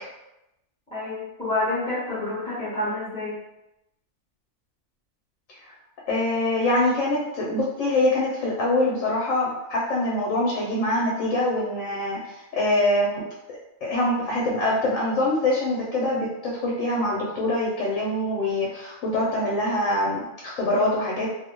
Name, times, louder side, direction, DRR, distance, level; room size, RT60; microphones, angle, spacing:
voice 1, 0.9-3.4, left 2 dB, 5° left, -11 dB, 0.7 m, -28 dB
voice 2, 6.1-13.2 13.5-21.3, left 1 dB, 75° left, -4 dB, 0.9 m, -24 dB
2.6 x 2.1 x 2.9 m, 0.90 s
omnidirectional pair, 1.4 m